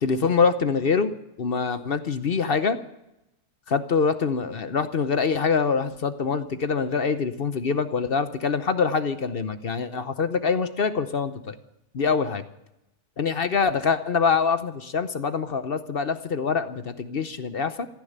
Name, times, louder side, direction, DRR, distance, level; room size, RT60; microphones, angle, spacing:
voice 1, 0.0-1.1 1.4-2.8 3.7-11.6 11.9-12.4 13.2-17.9, left 5 dB, 50° left, 11 dB, 0.9 m, -24 dB
15.0 x 10.0 x 8.8 m, 0.88 s
omnidirectional pair, 1.6 m